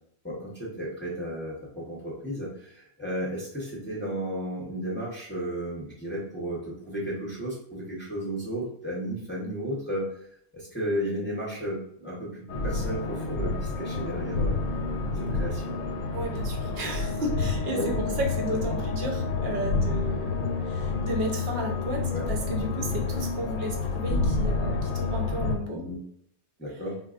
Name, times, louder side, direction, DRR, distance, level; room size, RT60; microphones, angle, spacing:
voice 1, 0.2-10.1 10.5-14.6 15.2-15.8 17.7-17.9 22.1-22.3 25.7-26.0 26.6-27.0, equal, 10° left, -5 dB, 0.6 m, -33 dB
sound 1, 12.5-25.6, left 3 dB, 70° left, 0.9 m, -29 dB
voice 2, 16.1-20.3 20.6-22.0 22.3-25.8, right 1 dB, 55° right, 1 dB, 0.8 m, -33 dB
4.1 x 2.3 x 2.4 m, 0.70 s
omnidirectional pair, 1.5 m